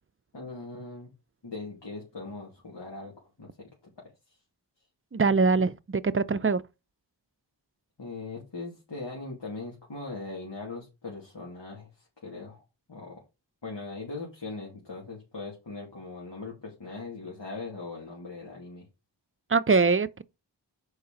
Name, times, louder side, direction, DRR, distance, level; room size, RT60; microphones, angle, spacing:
voice 1, 0.3-1.1 1.4-4.4 8.0-12.6 12.9-13.2 13.6-18.9, left 3 dB, 75° left, 2.7 m, -40 dB
voice 2, 5.1-6.6 19.5-20.2, right 4 dB, 30° right, 0.5 m, -23 dB
6.8 x 4.9 x 5.0 m
wide cardioid pair, 55°, 43 cm